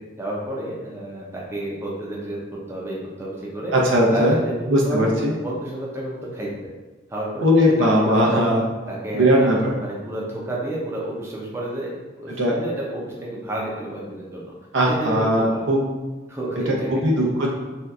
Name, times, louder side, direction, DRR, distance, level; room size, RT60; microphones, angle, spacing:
voice 1, 0.2-3.7 4.1-5.1 5.4-6.7 7.1-8.5 8.9-14.5 14.9-15.6 16.3-17.3, right 1 dB, 15° right, -4 dB, 0.5 m, -31 dB
voice 2, 3.7-4.4 4.7-5.3 7.4-8.6 9.1-9.7 12.4-12.5 14.7-15.8 16.7-17.5, equal, 85° right, -2 dB, 0.7 m, -19 dB
2.7 x 2.3 x 3.4 m, 1.2 s
head